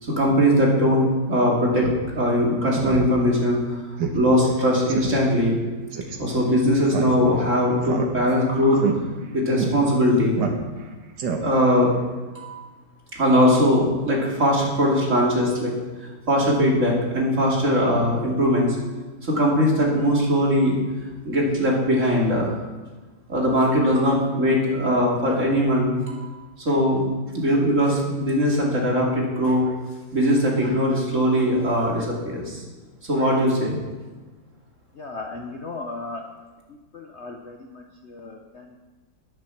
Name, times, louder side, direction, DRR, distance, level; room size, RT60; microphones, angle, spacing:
voice 1, 0.0-1.9 2.1-3.8 4.1-5.6 6.2-8.8 9.3-10.4 11.4-11.9 12.4-12.7 13.1-15.7 16.3-18.8 19.2-20.8 21.2-22.5 23.3-26.3 26.6-27.1 27.3-29.6 30.1-32.6 33.0-33.8, equal, 40° right, -3 dB, 2.9 m, -20 dB
Speech synthesizer, 1.8-2.0 2.4-2.5 2.7-3.1 3.4-3.5 4.0-4.2 4.5-4.6 4.9-5.2 5.9-6.2 6.9-7.4 7.8-8.4 8.8-9.0 9.6-9.7 10.4-10.8 11.2-11.7, right 6 dB, 70° right, 1.9 m, -28 dB
voice 2, 35.0-36.2 36.9-38.8, left 3 dB, 50° left, 2 dB, 0.9 m, -36 dB
10.5 x 10.0 x 5.9 m, 1.3 s
omnidirectional pair, 2.0 m